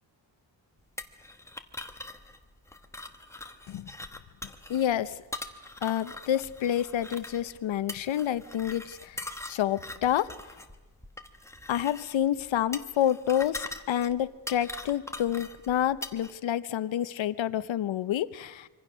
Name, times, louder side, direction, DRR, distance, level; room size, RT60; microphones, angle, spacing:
sound 1, 1.0-16.3, left 2 dB, 5° left, 1.0 m, -42 dB
voice 1, 4.7-5.2 5.8-10.5 11.7-18.7, left 11 dB, 85° left, 15 dB, 0.9 m, -29 dB
25.5 x 25.0 x 6.2 m, 1.2 s
wide cardioid pair, 180°, 45 cm